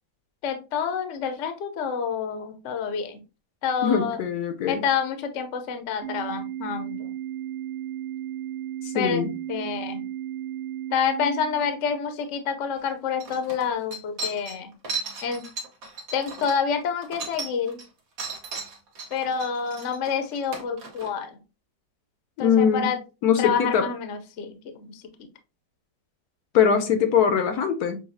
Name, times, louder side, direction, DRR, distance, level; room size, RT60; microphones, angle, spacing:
voice 1, 0.4-3.2 3.6-4.2 4.7-7.1 8.9-10.0 10.9-14.7 15.2-15.4 16.1-17.8 19.1-21.4 22.4-23.0 23.4-25.3, left 6 dB, 60° left, 0.9 m, -28 dB
voice 2, 3.8-4.8 8.8-9.4 22.4-22.9 23.2-23.9 26.5-28.0, left 7 dB, 75° left, 1.1 m, -22 dB
Organ, 6.0-12.0, right 11 dB, 80° right, 1.5 m, -34 dB
sound 1, 12.8-12.9 13.2-17.9 18.2-21.1, right 3 dB, 60° right, 1.5 m, -36 dB
6.9 x 2.3 x 2.6 m
omnidirectional pair, 1.8 m